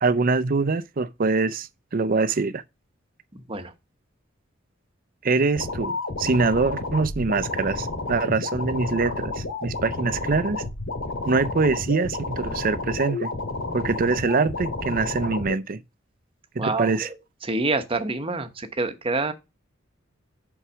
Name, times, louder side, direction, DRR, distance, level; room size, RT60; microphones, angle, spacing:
voice 1, 0.0-2.6 5.2-10.6 11.3-13.3 13.7-15.8 16.5-17.1, right 4 dB, 45° right, 0.5 m, -24 dB
voice 2, 3.3-3.7 16.6-17.1 17.4-19.3, right 3 dB, 30° right, 0.9 m, -27 dB
sound 1, 5.6-15.6, left 3 dB, 80° left, 2.1 m, -31 dB
5.6 x 4.7 x 6.1 m
head